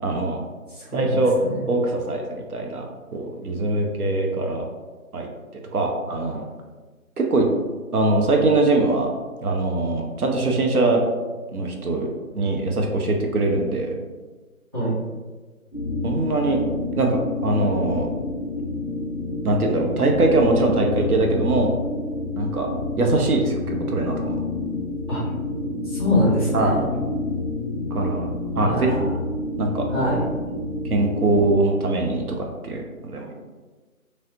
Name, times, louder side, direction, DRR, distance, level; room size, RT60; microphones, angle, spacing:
voice 1, 0.0-0.4 0.9-1.4 1.7-2.8 3.1-4.6 5.1-5.3 5.7-6.4 7.2-7.5 7.9-9.1 9.4-11.0 11.5-12.1 12.3-13.9 16.0-16.6 17.0-18.1 19.4-21.7 22.4-22.7 23.0-23.6 23.9-24.4 26.5-26.8 27.9-28.3 28.6-29.1 29.6-29.9 30.9-33.4, right 2 dB, 85° right, 2 dB, 0.7 m, -22 dB
voice 2, 0.7-1.2 14.7-14.9 25.1-25.2 25.8-26.8 28.6-29.1 29.9-30.2, left 1 dB, 20° right, -13 dB, 0.9 m, -23 dB
sound 1, 15.7-31.5, left 2 dB, 40° left, 0.4 m, -28 dB
3.1 x 2.8 x 2.7 m, 1.3 s
figure-of-eight pair, 165°, 43 cm